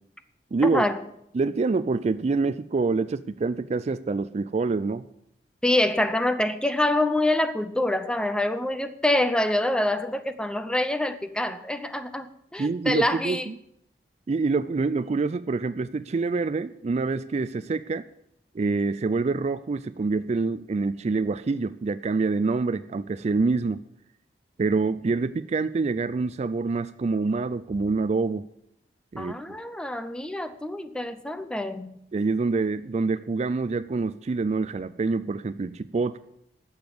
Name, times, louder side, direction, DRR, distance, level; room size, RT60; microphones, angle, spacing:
voice 1, 0.5-0.8 1.3-5.1 12.6-13.6 14.3-18.1 18.5-23.8 24.6-28.5 29.1-29.3 32.1-36.2, right 4 dB, 40° right, 0.4 m, -26 dB
voice 2, 5.6-13.4 29.2-31.9, left 1 dB, 5° left, 0.7 m, -26 dB
12.0 x 7.1 x 7.8 m
head